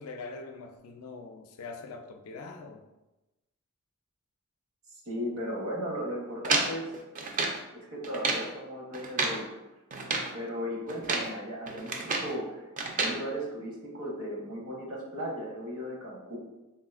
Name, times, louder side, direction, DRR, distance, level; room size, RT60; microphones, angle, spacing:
voice 1, 0.0-2.8, left 3 dB, 75° left, 5 dB, 0.4 m, -43 dB
voice 2, 5.0-6.9 7.7-9.5 10.3-12.7 13.0-16.4, equal, 65° right, -3 dB, 1.0 m, -36 dB
sound 1, 6.4-7.6 8.0-8.5 8.9-9.4 9.9-10.3 10.9-11.3 11.7-12.3 12.8-13.2, right 3 dB, 35° right, 0.4 m, -30 dB
3.7 x 2.4 x 2.4 m, 1.0 s
head